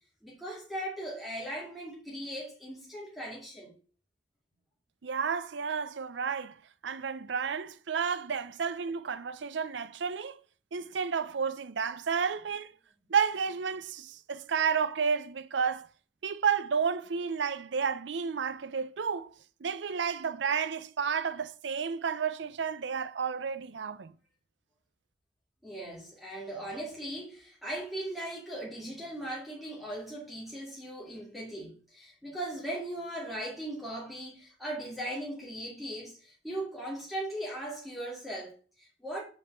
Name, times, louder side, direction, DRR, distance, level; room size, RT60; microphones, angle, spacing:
voice 1, 0.2-3.7 25.6-39.2, right 1 dB, ahead, 2.3 m, -38 dB
voice 2, 5.0-6.6 6.8-10.4 10.7-12.7 13.1-15.9 16.2-19.3 19.6-24.1, right 6 dB, 75° right, 0.5 m, -31 dB
5.4 x 5.4 x 6.7 m
head